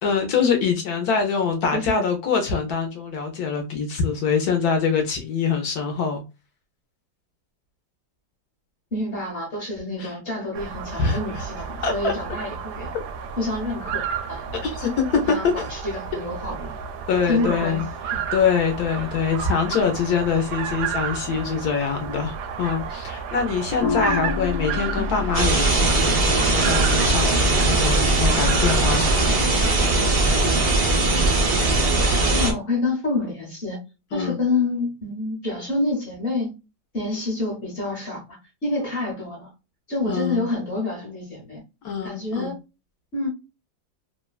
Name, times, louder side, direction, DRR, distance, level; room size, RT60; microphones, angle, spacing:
voice 1, 0.0-6.2 10.0-10.1 11.0-11.2 11.8-12.1 14.6-15.0 15.6-15.7 17.1-17.9 18.3-29.5 34.1-34.4 40.0-40.5 41.8-42.5, left 6 dB, 70° left, 0.9 m, -24 dB
voice 2, 1.7-2.1 8.9-12.9 13.4-14.6 15.3-16.7 17.3-17.8 24.9-25.3 32.3-33.8 34.1-36.5 36.9-39.5 39.9-41.6 42.0-42.5 43.1-43.3, left 2 dB, 45° left, 0.9 m, -28 dB
sound 1, 10.5-29.4, right 7 dB, 75° right, 1.0 m, -32 dB
sound 2, 23.8-32.4, left 4 dB, 90° left, 0.5 m, -32 dB
sound 3, 25.3-32.5, right 2 dB, 60° right, 0.6 m, -20 dB
3.0 x 2.2 x 2.3 m
omnidirectional pair, 2.1 m